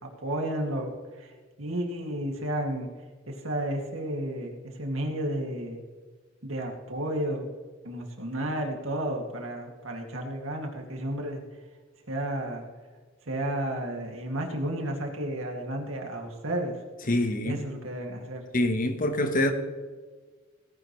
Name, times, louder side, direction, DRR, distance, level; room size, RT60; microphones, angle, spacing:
voice 1, 0.0-1.3 1.6-2.9 3.3-4.5 4.8-5.8 6.4-7.5 7.8-11.4 12.1-12.6 13.3-16.7 17.4-18.4, right 1 dB, 75° right, 2.4 m, -32 dB
voice 2, 17.1-17.6 18.5-19.5, left 1 dB, 40° left, 1.3 m, -25 dB
18.0 x 10.5 x 3.2 m
head